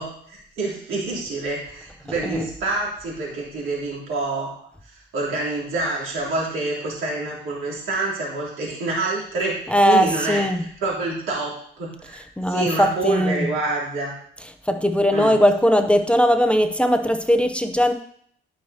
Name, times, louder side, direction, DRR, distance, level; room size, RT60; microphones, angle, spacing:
voice 1, 0.0-12.2 12.5-14.1 15.1-15.3, right 3 dB, 85° right, -5 dB, 3.4 m, -27 dB
voice 2, 9.7-10.6 12.4-13.5 14.7-17.9, equal, 5° left, 7 dB, 0.6 m, -19 dB
12.5 x 5.6 x 2.8 m, 0.63 s
cardioid pair, 90°, 20 cm